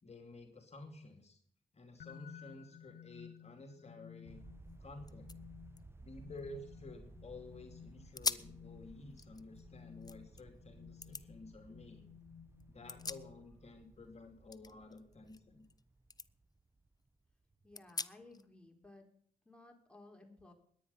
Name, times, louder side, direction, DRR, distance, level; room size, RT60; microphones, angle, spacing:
voice 1, 0.0-1.4 1.7-4.4 4.8-5.3 6.0-12.1 12.7-15.7, left 2 dB, 45° left, 4 dB, 2.6 m, -52 dB
sound 1, 2.0-13.7, left 9 dB, 70° left, 0.7 m, -56 dB
sound 2, 4.2-17.5, right 2 dB, 15° right, 0.7 m, -58 dB
sound 3, 4.7-4.8 5.0-7.2 7.6-7.8 8.1-8.6 9.0-10.4 11.0-11.3 12.6-13.7 14.0-15.8 16.1-16.3 16.8-16.9 17.7-18.5, left 3 dB, 25° left, 0.8 m, -44 dB
voice 2, 17.6-19.0 19.4-20.5, left 2 dB, 5° left, 2 dB, 4.1 m, -57 dB
21.0 x 9.3 x 5.6 m, 0.65 s
cardioid pair, 60°, 15 cm